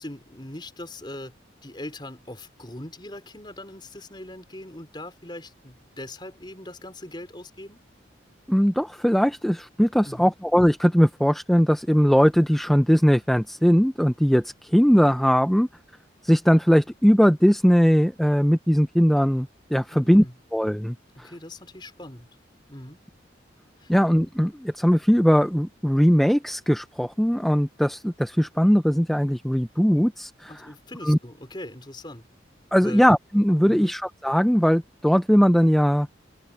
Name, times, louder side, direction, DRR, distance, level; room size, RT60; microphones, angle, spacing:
voice 1, 0.0-1.3 1.6-7.8 10.0-10.4 19.9-20.3 21.1-22.3 22.7-23.0 23.8-23.9 30.5-32.2 32.8-33.1 33.6-34.0, left 1 dB, 25° left, 4.3 m, -40 dB
voice 2, 8.5-15.7 16.2-20.2 20.5-21.3 23.9-30.5 31.0-31.2 32.7-36.1, equal, ahead, 0.5 m, -20 dB
open air
head